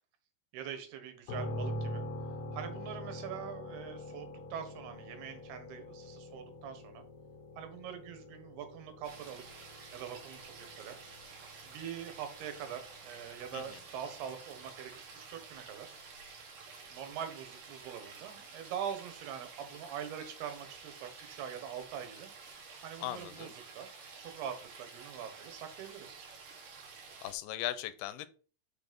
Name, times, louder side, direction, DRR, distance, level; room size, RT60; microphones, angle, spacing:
voice 1, 0.5-2.0 2.5-7.0 7.6-9.4 9.9-11.0 11.6-15.9 16.9-22.3 22.8-23.9 24.2-26.3, right 8 dB, 85° right, 8 dB, 3.3 m, -43 dB
sound 1, 1.3-15.0, left 1 dB, 55° left, 1.9 m, -45 dB
sound 2, 9.0-27.3, right 4 dB, 60° right, 3.2 m, -51 dB
voice 2, 23.0-23.5 27.2-28.3, left 14 dB, 90° left, 14 dB, 2.6 m, -38 dB
6.2 x 6.1 x 5.2 m, 0.40 s
omnidirectional pair, 4.4 m